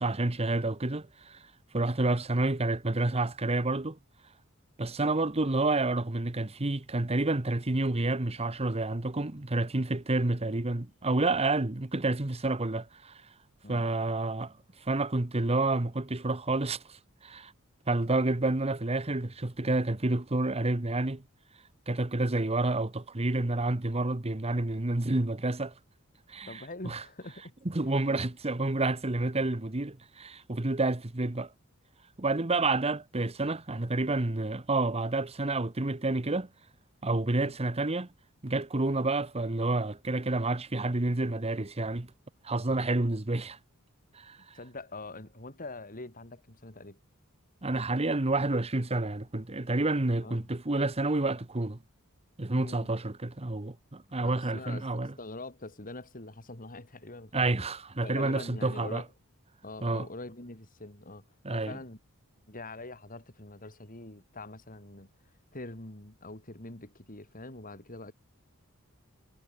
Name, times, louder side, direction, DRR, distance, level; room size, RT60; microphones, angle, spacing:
voice 1, 0.0-1.4 1.7-4.0 4.8-13.2 13.7-14.5 14.8-17.5 17.9-21.2 21.9-25.7 26.3-27.0 27.6-31.5 32.2-36.5 37.0-38.1 38.4-42.1 42.4-43.6 44.1-44.4 47.6-51.8 52.4-55.1 57.3-59.0 59.8-60.1 61.4-61.7, right 2 dB, 30° right, 1.1 m, -29 dB
voice 2, 26.5-27.5 27.8-28.2 37.4-37.6 44.5-47.0 50.2-50.5 52.5-52.9 54.2-57.5 58.0-59.1 59.6-62.0 62.5-65.1 65.5-68.1, left 2 dB, 40° left, 4.4 m, -44 dB
head